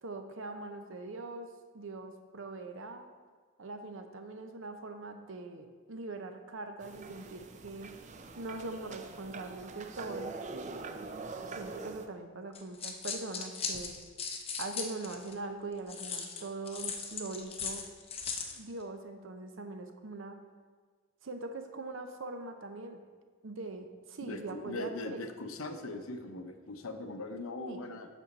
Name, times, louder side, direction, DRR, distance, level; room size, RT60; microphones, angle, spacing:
voice 1, 0.0-3.1 3.6-7.9 8.4-10.4 10.8-10.9 11.6-13.9 14.6-17.9 18.5-20.4 21.2-23.0 23.4-25.2 27.7-27.8, right 3 dB, 65° right, 7 dB, 0.7 m, -42 dB
sound 1, 6.8-12.1, right 3 dB, 35° right, 0.4 m, -44 dB
sound 2, 12.5-15.3 15.9-18.6, left 5 dB, 30° left, 0.7 m, -38 dB
voice 2, 24.3-28.1, left 2 dB, 75° left, 7 dB, 0.7 m, -40 dB
8.3 x 6.2 x 4.0 m, 1.5 s
head